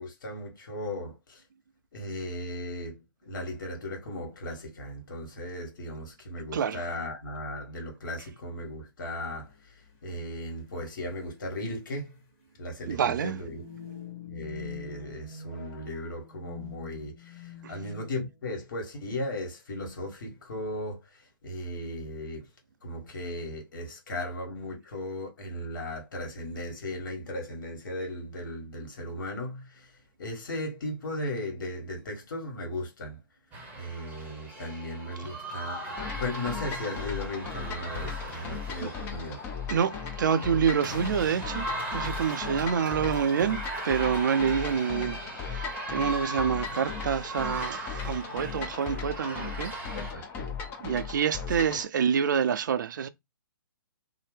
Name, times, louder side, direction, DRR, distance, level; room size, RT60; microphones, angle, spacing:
voice 1, 0.0-1.4 1.9-12.2 12.6-13.6 14.3-22.5 22.8-33.2 33.7-39.4 49.2-49.5 49.9-50.5 51.7-51.8, left 1 dB, 60° left, 1.3 m, -37 dB
sound 1, 9.3-9.4 10.4-10.7 11.0-11.1 11.5-11.8 12.8-18.5, left 7 dB, 40° left, 0.9 m, -45 dB
voice 2, 12.9-13.4 17.6-17.7 39.7-43.6 43.8-49.7 50.8-53.1, right 7 dB, 55° right, 0.4 m, -27 dB
sound 2, 33.5-50.1, right 1 dB, 10° right, 0.9 m, -38 dB
sound 3, 36.0-51.8, left 6 dB, 20° left, 0.5 m, -37 dB
2.7 x 2.0 x 3.2 m
figure-of-eight pair, 130°, 12 cm